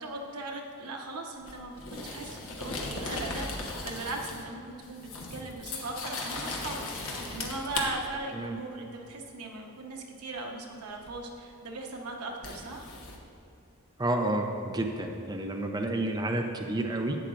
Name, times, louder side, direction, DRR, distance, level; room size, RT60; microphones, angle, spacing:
voice 1, 0.0-12.9, right 2 dB, 85° right, 1 dB, 1.1 m, -39 dB
sound 1, 1.4-4.5 4.8-7.8 11.1-11.2 12.4-13.2, left 3 dB, 65° left, 1.2 m, -37 dB
voice 2, 14.0-17.2, right 1 dB, 20° right, 3 dB, 0.5 m, -30 dB
11.5 x 8.7 x 2.5 m, 2.8 s
head